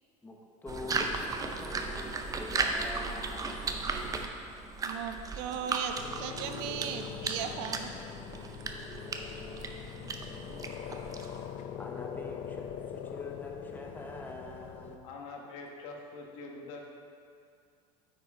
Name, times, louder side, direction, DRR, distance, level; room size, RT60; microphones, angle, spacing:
voice 1, 0.2-1.1 1.4-3.8 9.2-9.7 11.8-15.1, left 2 dB, 10° left, 0 dB, 0.9 m, -45 dB
sound 1, 0.7-11.5, right 4 dB, 20° right, 0.6 m, -36 dB
voice 2, 4.8-8.0, right 8 dB, 65° right, 7 dB, 0.6 m, -37 dB
sound 2, 6.0-15.0, left 8 dB, 50° left, 0.6 m, -42 dB
voice 3, 15.0-16.8, left 3 dB, 70° left, 0 dB, 1.3 m, -44 dB
9.0 x 4.8 x 4.2 m, 2.3 s
supercardioid pair, 105°, 17 cm